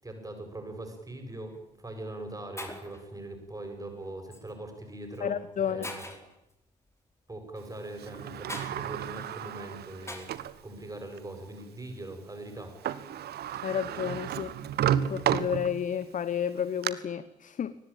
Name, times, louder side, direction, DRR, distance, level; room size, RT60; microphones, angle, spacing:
voice 1, 0.0-6.0 7.3-10.3 10.6-12.7, right 2 dB, 15° right, 8.0 m, -41 dB
Shatter, 1.3-1.6 2.3-2.4 2.6-3.0 4.3-4.5 5.1-5.2 5.8-6.3 8.5-8.7 10.1-10.5, left 1 dB, 15° left, 4.6 m, -41 dB
voice 2, 5.2-5.9 13.6-14.5 15.1-17.8, left 8 dB, 35° left, 1.0 m, -31 dB
Sliding door, 8.0-10.6 11.2-11.3 12.6-12.7 12.8-16.0 16.5-16.9, right 10 dB, 50° right, 1.3 m, -32 dB
24.0 x 19.0 x 9.1 m
figure-of-eight pair, 45°, 21 cm